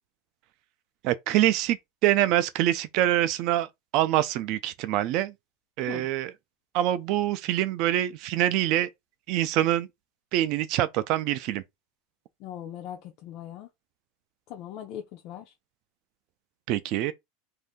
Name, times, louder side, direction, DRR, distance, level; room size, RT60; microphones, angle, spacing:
voice 1, 1.0-1.8 2.0-3.7 3.9-5.3 5.8-6.3 6.7-8.9 9.3-9.9 10.3-11.6 16.7-17.1, right 13 dB, 40° right, 0.4 m, -25 dB
voice 2, 12.4-13.7 14.5-15.5, left 10 dB, 40° left, 0.5 m, -39 dB
2.6 x 2.5 x 3.5 m
supercardioid pair, 170°, 0 cm